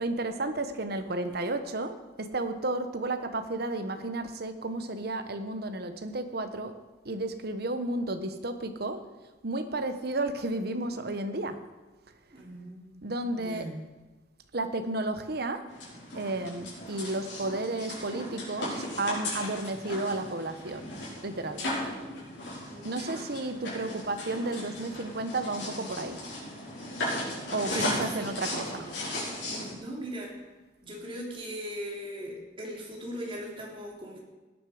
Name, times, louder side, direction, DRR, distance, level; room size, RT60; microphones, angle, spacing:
voice 1, 0.0-6.7 7.0-9.1 9.4-11.6 13.0-13.7 14.5-15.7 16.1-20.9 21.2-22.0 22.8-26.2 27.5-28.9, right 2 dB, 55° right, 8 dB, 1.2 m, -32 dB
voice 2, 12.3-13.0 13.3-13.8 22.7-23.1 27.7-28.3 29.4-30.3 30.8-34.2, equal, 30° right, -3 dB, 3.3 m, -39 dB
sound 1, 15.7-29.7, left 1 dB, 75° left, 5.8 m, -36 dB
17.5 x 10.5 x 5.0 m, 1.2 s
head